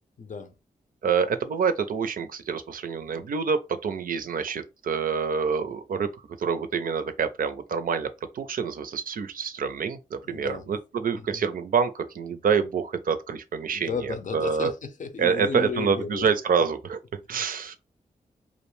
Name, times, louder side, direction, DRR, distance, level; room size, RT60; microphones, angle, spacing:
voice 1, 0.2-0.6 10.2-10.7 11.1-11.4 13.7-16.4, left 5 dB, 55° left, 0.6 m, -34 dB
voice 2, 1.0-14.7 15.2-17.8, right 6 dB, 65° right, 0.4 m, -27 dB
2.5 x 2.1 x 3.1 m
cardioid pair, 45°, 15 cm